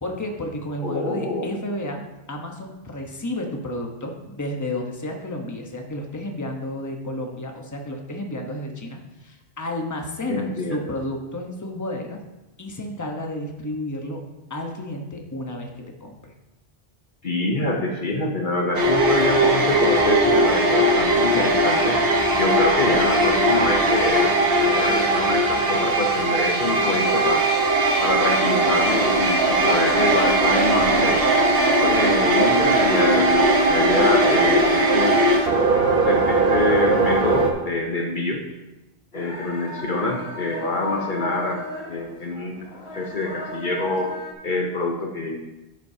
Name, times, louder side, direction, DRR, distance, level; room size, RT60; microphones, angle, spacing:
voice 1, 0.0-2.0 2.3-12.2 12.6-14.2 14.5-15.7 16.0-16.3, left 1 dB, 20° left, 2 dB, 1.0 m, -31 dB
voice 2, 0.8-1.5 10.3-10.8 17.2-22.0 22.3-27.5 28.0-31.3 31.8-35.2 35.7-38.4 39.1-42.7 43.0-44.1 44.4-45.4, left 2 dB, 55° left, 2 dB, 1.0 m, -25 dB
sound 1, 18.7-37.5, right 2 dB, 65° right, 1.3 m, -19 dB
sound 2, 39.1-44.3, left 2 dB, 80° left, 1.7 m, -35 dB
11.0 x 8.1 x 2.8 m, 1.0 s
omnidirectional pair, 1.0 m